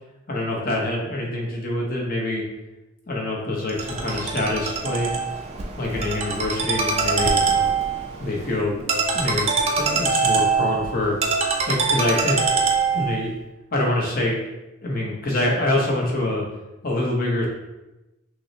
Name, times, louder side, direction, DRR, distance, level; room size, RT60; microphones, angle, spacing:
voice 1, 0.3-2.4 3.1-5.1 5.8-7.4 8.2-11.2 11.7-12.6 12.9-13.3 13.7-14.4 14.8-16.4 16.8-17.5, left 1 dB, 45° left, -2 dB, 0.8 m, -25 dB
Ringtone, 3.7-13.3, right 4 dB, 30° right, 0.4 m, -23 dB
6.0 x 2.1 x 2.7 m, 0.99 s
head